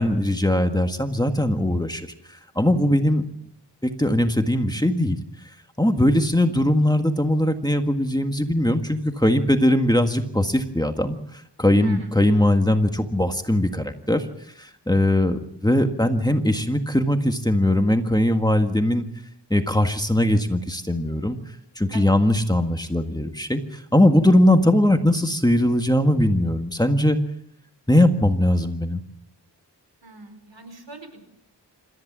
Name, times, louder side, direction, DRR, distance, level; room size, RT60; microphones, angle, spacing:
voice 1, 0.0-2.1 2.6-3.2 3.8-5.2 5.8-11.2 11.6-14.3 14.6-19.1 19.5-21.4 21.8-27.2 27.9-29.0, left 1 dB, 10° left, 6 dB, 1.8 m, -20 dB
voice 2, 30.0-31.2, right 2 dB, 90° right, 8 dB, 4.3 m, -41 dB
27.0 x 14.0 x 7.5 m, 0.75 s
wide cardioid pair, 65°, 42 cm